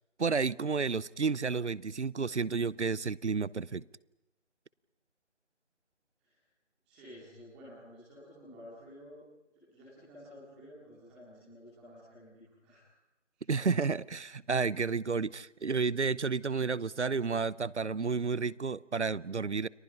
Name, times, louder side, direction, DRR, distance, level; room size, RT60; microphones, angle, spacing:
voice 1, 0.2-3.8 13.5-19.7, right 5 dB, 70° right, 22 dB, 0.8 m, -31 dB
voice 2, 6.9-9.2 9.5-12.9 13.3-13.5 15.6-15.8, equal, 5° right, -7 dB, 2.4 m, -52 dB
30.0 x 23.0 x 5.8 m, 0.96 s
figure-of-eight pair, 175°, 36 cm